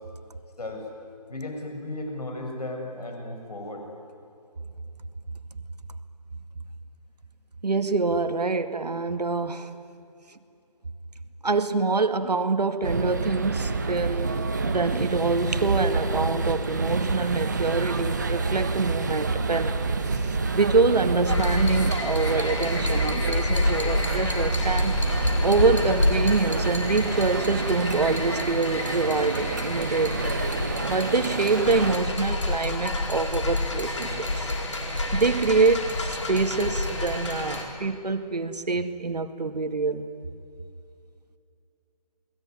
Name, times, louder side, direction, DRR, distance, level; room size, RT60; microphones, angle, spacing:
voice 1, 1.3-3.9, left 1 dB, 70° left, 2 dB, 7.8 m, -35 dB
voice 2, 7.6-9.7 11.4-19.8 20.2-25.0 25.4-30.4 30.9-34.5 35.1-40.1, right 3 dB, 75° right, 9 dB, 2.1 m, -25 dB
sound 1, 12.8-32.0, right 3 dB, 25° right, 1.1 m, -28 dB
sound 2, 21.3-37.6, left 2 dB, 45° left, 4.4 m, -29 dB
29.5 x 20.5 x 9.8 m, 2.6 s
hypercardioid pair, 175°, 21 cm